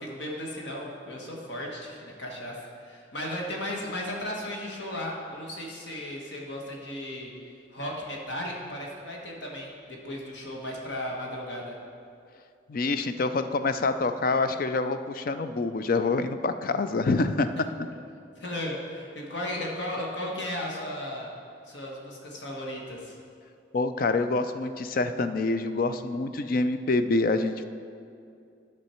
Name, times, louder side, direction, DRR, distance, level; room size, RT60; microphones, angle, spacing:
voice 1, 0.0-7.3 7.7-11.8 18.4-21.3 21.6-23.2, left 1 dB, 70° left, -1 dB, 1.4 m, -35 dB
voice 2, 12.7-17.5 23.7-27.6, left 3 dB, 50° left, 10 dB, 0.4 m, -26 dB
11.0 x 6.3 x 4.4 m, 2.4 s
head